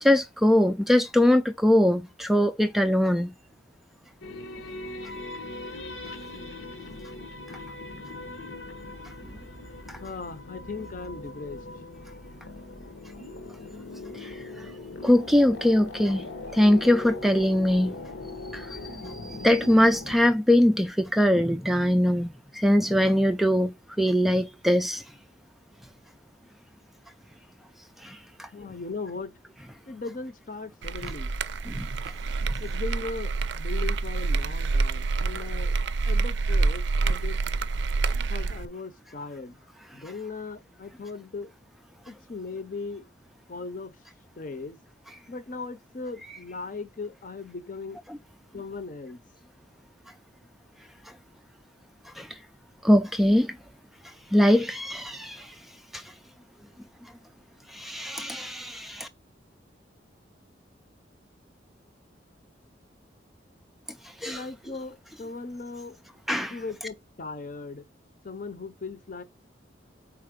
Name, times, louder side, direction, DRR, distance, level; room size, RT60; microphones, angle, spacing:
voice 1, 0.0-3.3 9.9-10.0 14.2-14.3 15.0-16.3 16.5-17.9 18.5-18.8 19.0-25.0 28.0-28.5 31.7-31.9 52.2-52.3 52.8-53.6 54.3-55.5 55.9-56.0 57.7-59.1 64.2-64.4 66.3-66.5, left 1 dB, ahead, 0.3 m, -22 dB
sound 1, 4.2-20.2, left 2 dB, 85° left, 1.1 m, -40 dB
voice 2, 10.0-11.6 12.0-12.2 28.5-29.3 29.9-31.3 32.6-35.8 36.1-37.4 38.3-39.6 39.9-41.5 42.1-43.1 43.5-43.9 44.4-44.8 45.3-48.0 48.5-49.2 64.2-66.0 66.5-67.9 68.2-69.2, left 3 dB, 45° left, 0.7 m, -38 dB
sound 2, 30.8-38.7, right 3 dB, 70° right, 0.5 m, -27 dB
4.7 x 4.1 x 5.0 m
head